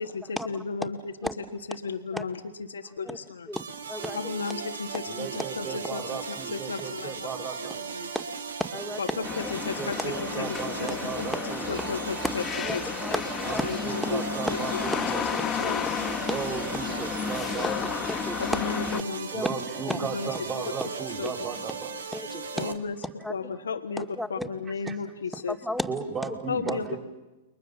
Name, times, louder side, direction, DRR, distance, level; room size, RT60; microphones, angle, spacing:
voice 1, 0.0-1.1 1.7-2.4 2.7-3.5 4.1-7.3 7.7-8.1 9.0-11.3 11.7-12.4 12.7-13.2 13.6-13.8 14.1-14.2 14.5-15.1 15.4-16.2 18.4-19.4 20.0-20.6 21.2-21.3 22.5-23.0 23.3-25.6 26.5-27.0, left 5 dB, 90° left, 7 dB, 1.4 m, -34 dB
voice 2, 3.5-4.2 8.1-8.2 8.7-9.0 9.4-9.5 10.9-11.2 12.6-12.8 13.0-13.6 14.4-14.5 15.5-15.8 17.8-18.4 19.3-19.5 19.9-20.0 22.1-22.7 23.2-23.3 24.0-24.5 25.5-25.9, left 1 dB, ahead, 8 dB, 2.2 m, -33 dB
sound 1, 3.5-22.7, right 5 dB, 85° right, 2.4 m, -37 dB
voice 3, 5.1-7.8 9.8-11.8 13.4-15.2 16.3-17.9 19.3-21.9 24.8-25.0 25.9-27.0, right 5 dB, 25° right, 3 dB, 5.7 m, -35 dB
sound 2, 9.2-19.0, left 7 dB, 20° left, 1.8 m, -32 dB
29.5 x 22.5 x 7.3 m, 1.1 s
hypercardioid pair, 115°, 0 cm